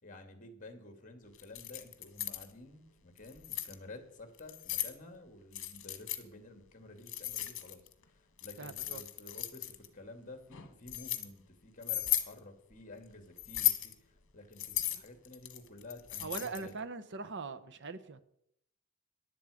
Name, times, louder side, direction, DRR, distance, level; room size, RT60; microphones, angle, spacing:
voice 1, 0.0-16.7, left 2 dB, 40° left, 7 dB, 2.4 m, -52 dB
Keys jangling, 1.4-2.5 3.2-3.7 4.4-4.9 5.5-6.2 7.1-7.9 8.4-9.9 10.5-11.2 11.8-12.3 13.4-13.9 14.6-16.7, left 13 dB, 65° left, 1.5 m, -35 dB
voice 2, 8.6-9.0 16.2-18.2, right 4 dB, 55° right, 11 dB, 0.9 m, -41 dB
15.5 x 11.0 x 5.1 m, 0.74 s
head